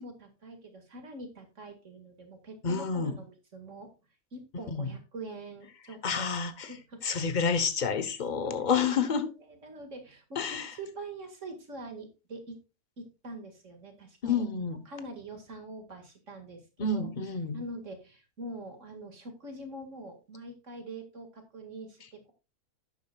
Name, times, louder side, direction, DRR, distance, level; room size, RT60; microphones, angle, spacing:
voice 1, 0.0-3.9 4.3-6.3 6.6-7.1 8.3-8.7 9.5-12.6 13.0-14.4 14.9-17.1 17.5-22.3, right 2 dB, 55° right, 2.3 m, -44 dB
voice 2, 2.6-3.2 4.7-4.9 6.0-6.7 7.0-9.3 10.4-10.7 14.2-14.8 16.8-17.6, left 5 dB, 35° left, 1.0 m, -29 dB
11.5 x 8.9 x 2.4 m
omnidirectional pair, 1.5 m